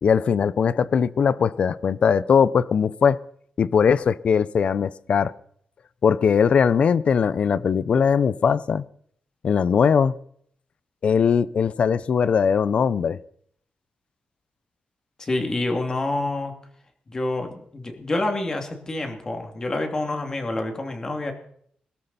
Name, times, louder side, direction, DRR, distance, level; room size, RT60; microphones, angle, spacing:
voice 1, 0.0-3.2 3.6-5.3 6.0-8.8 9.4-10.1 11.0-13.2, left 6 dB, 50° left, 19 dB, 0.6 m, -20 dB
voice 2, 15.2-16.5 17.1-21.3, left 2 dB, 25° left, 5 dB, 2.5 m, -27 dB
21.5 x 13.0 x 4.2 m, 0.64 s
wide cardioid pair, 175°, 3 cm